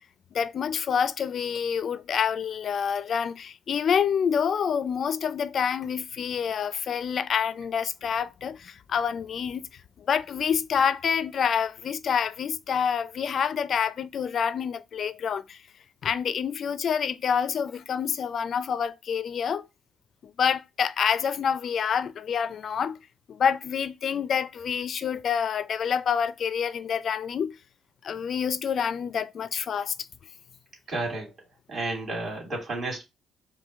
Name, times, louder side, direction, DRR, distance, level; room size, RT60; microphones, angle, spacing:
voice 1, 0.3-9.7 10.0-15.6 16.0-19.7 20.2-23.0 23.3-27.6 28.0-29.9, left 7 dB, 55° left, 0.4 m, -27 dB
voice 2, 30.9-31.3 31.7-33.0, right 2 dB, 50° right, 2.7 m, -31 dB
5.0 x 2.2 x 3.5 m
cardioid pair, 90°, 0 cm